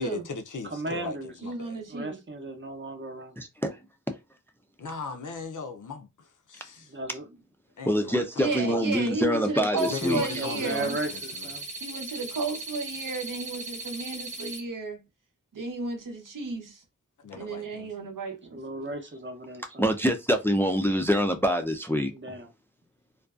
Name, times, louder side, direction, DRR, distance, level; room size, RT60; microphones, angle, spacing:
voice 1, 0.0-1.8 4.8-6.9 7.8-8.8 9.9-11.5 17.2-17.9, left 4 dB, 70° left, 0.5 m, -38 dB
voice 2, 0.7-1.3 1.9-3.3 6.9-7.2 10.4-11.7 18.5-19.8 22.2-22.4, right 2 dB, 35° right, 0.6 m, -35 dB
voice 3, 1.4-2.2 8.4-11.0 11.8-15.0 15.5-16.8 17.3-18.6, right 3 dB, 80° right, 0.7 m, -33 dB
voice 4, 3.4-3.8 4.1-4.2 7.9-10.4 17.3-17.4 19.8-22.4, equal, 10° left, 0.3 m, -26 dB
sound 1, 9.8-14.6, right 3 dB, 20° right, 0.9 m, -38 dB
2.4 x 2.2 x 2.3 m
wide cardioid pair, 60°, 32 cm